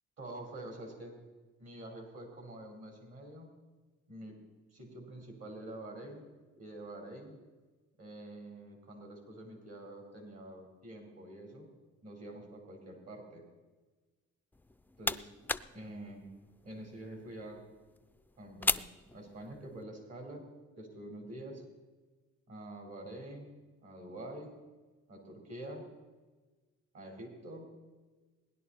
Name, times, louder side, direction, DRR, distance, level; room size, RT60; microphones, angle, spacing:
voice 1, 0.2-1.2 1.6-3.5 4.1-4.4 4.7-6.3 6.6-7.4 8.0-11.7 12.0-13.4 15.0-15.3 15.7-16.3 16.6-17.6 18.4-18.8 19.1-20.5 20.8-21.6 22.5-24.5 25.1-25.9 26.9-27.7, right 1 dB, 55° right, 2 dB, 4.3 m, -46 dB
sound 1, 14.5-19.8, left 2 dB, 5° left, 0.4 m, -39 dB
18.0 x 11.0 x 4.3 m, 1.3 s
cardioid pair, 90°, 30 cm